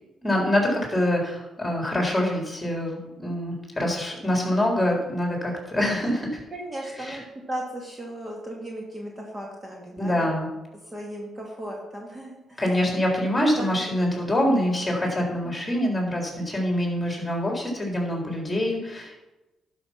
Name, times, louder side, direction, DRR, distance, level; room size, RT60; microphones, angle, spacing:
voice 1, 0.2-6.4 7.0-7.2 10.0-10.5 12.6-19.2, left 1 dB, 10° left, -1 dB, 3.8 m, -25 dB
voice 2, 6.5-10.3 10.9-12.6 13.5-13.9 15.4-15.6, right 1 dB, 20° right, -1 dB, 2.1 m, -36 dB
11.5 x 5.8 x 5.8 m, 1.0 s
cardioid pair, 90°, 0 cm